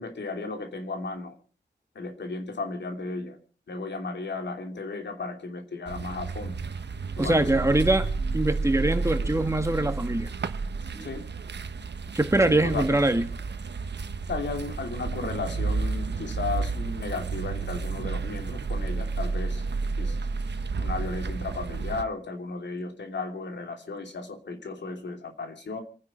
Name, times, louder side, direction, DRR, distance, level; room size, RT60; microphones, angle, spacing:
voice 1, 0.0-1.4 1.9-3.4 3.7-6.5 7.2-7.4 11.0-11.2 12.4-12.8 14.3-19.6 20.0-20.1 20.8-25.8, left 3 dB, 80° left, 4 dB, 2.9 m, -34 dB
sound 1, 5.9-22.0, right 4 dB, 75° right, 1.1 m, -31 dB
voice 2, 7.2-8.1 8.3-10.3 10.9-11.1 12.1-13.3, right 2 dB, 15° right, 7 dB, 1.8 m, -23 dB
27.0 x 10.0 x 4.4 m, 0.39 s
wide cardioid pair, 90°, 18 cm